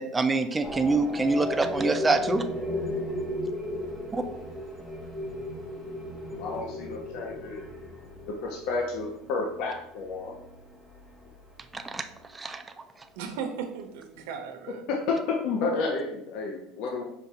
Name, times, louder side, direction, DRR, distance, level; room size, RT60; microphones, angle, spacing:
voice 1, 0.0-2.4 4.1-4.2 11.7-12.0 12.3-12.6, right 3 dB, 10° right, 7 dB, 0.3 m, -25 dB
sound 1, 0.6-12.2, left 1 dB, 10° left, 0.8 m, -36 dB
voice 2, 6.3-7.6 8.4-10.3 14.9-15.0 15.4-17.0, left 3 dB, 60° left, 0 dB, 0.7 m, -31 dB
voice 3, 13.2-14.8, right 6 dB, 85° right, 5 dB, 0.8 m, -36 dB
5.1 x 2.4 x 4.1 m, 0.78 s
cardioid pair, 150°, 0 cm